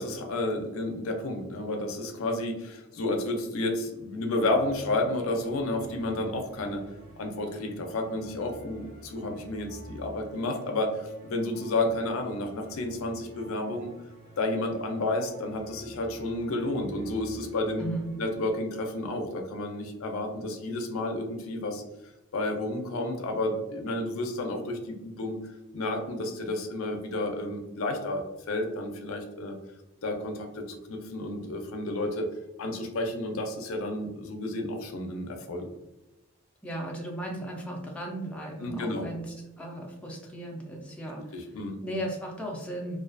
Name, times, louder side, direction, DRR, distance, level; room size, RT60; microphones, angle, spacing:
voice 1, 0.0-6.8 7.2-13.9 14.4-17.8 18.2-21.8 22.3-25.4 25.7-29.6 30.0-32.3 32.6-35.7 38.6-39.1 41.3-41.8, left 2 dB, 75° left, 3 dB, 0.5 m, -31 dB
sound 1, 4.5-19.0, right 1 dB, 40° right, 0.7 m, -50 dB
voice 2, 17.8-18.1 36.6-39.3 39.6-41.4 41.8-43.0, right 1 dB, 5° left, -2 dB, 0.4 m, -36 dB
2.4 x 2.3 x 2.4 m, 0.97 s
head